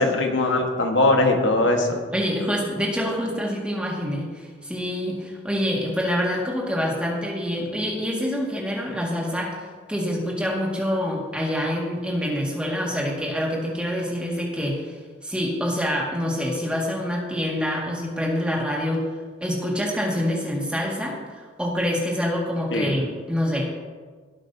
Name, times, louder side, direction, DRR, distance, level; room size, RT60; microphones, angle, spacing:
voice 1, 0.0-2.0 22.7-23.0, left 2 dB, 80° left, 3 dB, 1.5 m, -20 dB
voice 2, 2.1-9.5 9.9-14.9 15.2-19.1 19.4-23.7, equal, 5° right, -3 dB, 1.9 m, -26 dB
17.0 x 8.3 x 2.8 m, 1.5 s
head